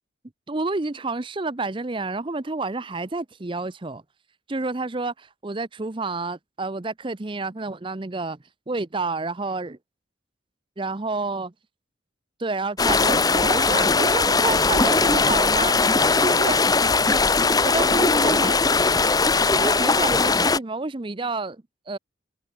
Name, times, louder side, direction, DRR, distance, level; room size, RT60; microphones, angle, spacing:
voice 1, 0.5-4.0 4.5-8.4 8.7-9.8 10.8-11.5 12.4-15.8 16.2-16.7 17.1-17.2 17.6-18.6 19.5-22.0, right 3 dB, 25° right, 0.7 m, -29 dB
sound 1, 12.8-20.6, left 4 dB, 20° left, 0.9 m, -19 dB
head